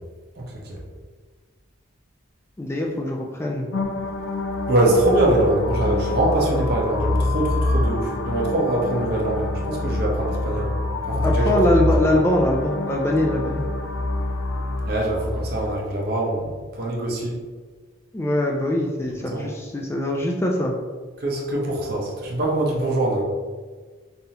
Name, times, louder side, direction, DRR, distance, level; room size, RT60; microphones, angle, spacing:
voice 1, 0.4-0.8 4.7-10.7 11.0-11.9 14.8-17.4 19.3-19.5 21.2-23.2, right 1 dB, 50° right, -2 dB, 0.9 m, -23 dB
voice 2, 2.6-3.7 11.2-13.6 18.1-20.8, left 1 dB, 15° left, 0 dB, 0.3 m, -22 dB
sound 1, 3.7-15.7, left 2 dB, 90° left, 0.5 m, -26 dB
5.4 x 2.7 x 2.8 m, 1.5 s
head